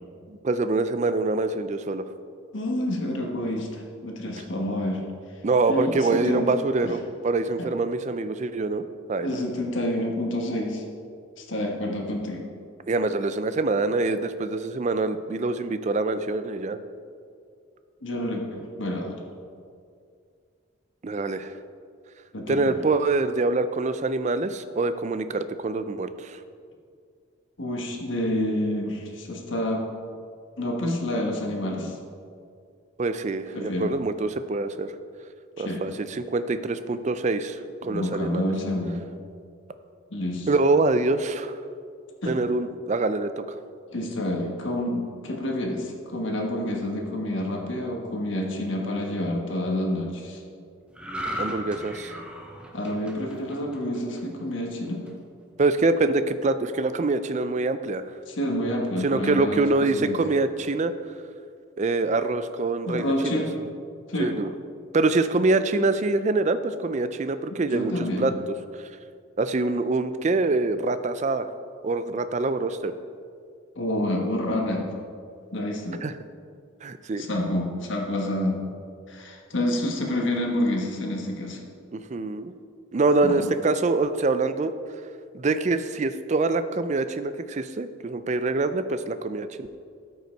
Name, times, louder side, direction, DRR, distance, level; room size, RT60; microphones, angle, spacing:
voice 1, 0.3-2.1 4.4-4.5 5.4-9.4 12.9-16.8 21.0-21.5 22.5-26.4 33.0-34.9 35.6-38.5 40.5-41.6 42.3-43.6 51.4-52.2 55.6-58.0 59.0-60.9 61.8-63.4 64.2-64.5 64.9-68.3 68.7-68.9 69.4-71.5 71.8-72.9 76.0-76.1 76.8-77.3 81.9-82.5 82.9-84.7 85.3-89.8, right 3 dB, 35° right, 11 dB, 0.4 m, -25 dB
voice 2, 2.5-5.0 5.7-6.4 6.8-6.9 7.6-7.7 9.2-10.8 11.4-12.4 18.0-19.2 22.3-22.8 27.6-29.8 30.6-32.0 33.5-33.9 35.6-35.8 37.8-39.0 40.1-40.5 42.2-42.3 43.9-50.4 52.7-55.0 58.3-60.2 62.9-63.5 64.1-64.3 67.6-68.3 73.8-74.9 75.5-76.0 77.2-78.6 79.1-81.6 83.2-83.5, left 1 dB, 70° left, 1 dB, 1.4 m, -28 dB
sound 1, 50.9-54.4 54.8-55.1, equal, 5° right, 0.8 m, -36 dB
13.0 x 5.5 x 4.6 m, 2.3 s
head